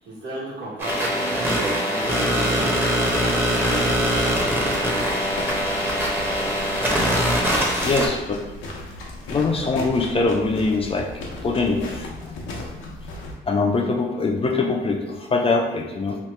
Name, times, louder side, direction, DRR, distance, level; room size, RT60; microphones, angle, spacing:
voice 1, 0.0-2.7 3.7-4.1 4.4-4.5, right 1 dB, 60° right, -4 dB, 1.2 m, -35 dB
sound 1, 0.8-8.1, equal, 10° right, 0.7 m, -22 dB
sound 2, 3.1-13.3, left 2 dB, 85° left, 0.7 m, -36 dB
voice 2, 7.8-8.4 9.3-11.1 11.4-12.1 13.5-16.2, left 3 dB, 30° left, 1 dB, 0.4 m, -23 dB
2.9 x 2.2 x 3.2 m, 1.2 s
cardioid pair, 90°, 20 cm